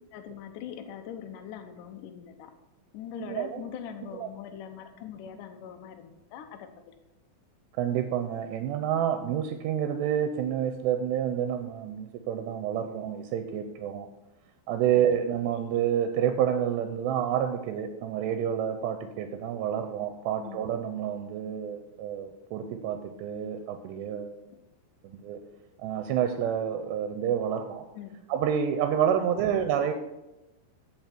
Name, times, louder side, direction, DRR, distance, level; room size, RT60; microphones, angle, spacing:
voice 1, 0.1-2.5 2.9-6.7 15.0-15.1 20.4-20.6 28.0-28.2 29.2-29.6, left 9 dB, 85° left, 6 dB, 1.9 m, -42 dB
voice 2, 3.2-3.6 4.1-4.3 7.8-14.1 14.7-24.4 25.0-25.4 25.8-27.8 28.3-29.9, right 9 dB, 90° right, 7 dB, 2.8 m, -29 dB
14.5 x 5.7 x 4.5 m, 0.98 s
omnidirectional pair, 4.9 m